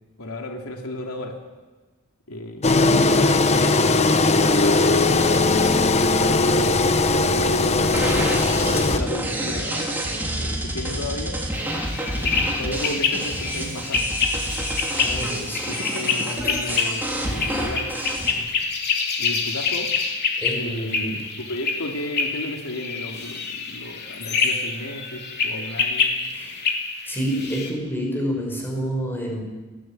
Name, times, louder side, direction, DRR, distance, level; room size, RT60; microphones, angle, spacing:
voice 1, 0.2-1.4 2.3-9.9 10.3-11.4 12.1-14.1 14.9-17.9 18.2-18.5 19.2-19.9 20.5-26.1, left 1 dB, 90° left, 2 dB, 3.0 m, -33 dB
Engine, 2.6-9.0, left 3 dB, 30° left, 1.0 m, -19 dB
sound 1, 7.9-18.3, right 1 dB, 10° right, 3.6 m, -28 dB
sound 2, 11.5-27.7, left 5 dB, 50° left, 3.1 m, -27 dB
voice 2, 15.0-15.8 20.4-21.3 26.3-26.7 27.0-29.4, equal, 10° left, 0 dB, 6.2 m, -28 dB
29.0 x 12.0 x 9.2 m, 1.3 s
head